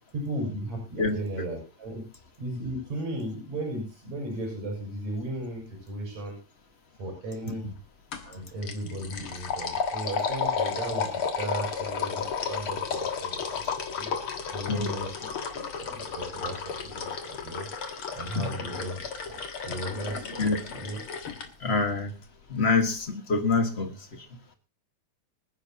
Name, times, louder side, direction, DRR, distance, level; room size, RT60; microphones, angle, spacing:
voice 1, 0.1-2.0 2.4-6.4 7.0-7.7 8.2-14.1 14.5-15.2 15.5-17.7 18.1-21.0, right 1 dB, 70° right, 0 dB, 7.3 m, -36 dB
sound 1, 8.1-8.3 8.6-21.5, left 6 dB, 50° left, 2.2 m, -33 dB
voice 2, 21.6-22.1 22.5-24.2, left 3 dB, 35° left, 6 dB, 1.0 m, -26 dB
26.5 x 10.0 x 2.9 m, 0.31 s
omnidirectional pair, 3.4 m